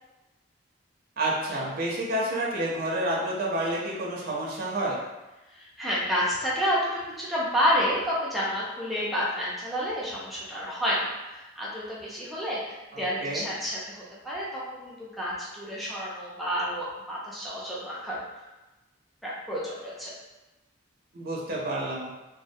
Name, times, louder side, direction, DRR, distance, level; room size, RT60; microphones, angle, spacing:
voice 1, 1.2-5.0 12.9-13.4 21.1-22.1, right 1 dB, 50° right, -4 dB, 0.5 m, -29 dB
voice 2, 5.5-18.2 19.2-20.1, equal, ahead, -7 dB, 0.5 m, -30 dB
2.3 x 2.1 x 2.6 m, 1.1 s
head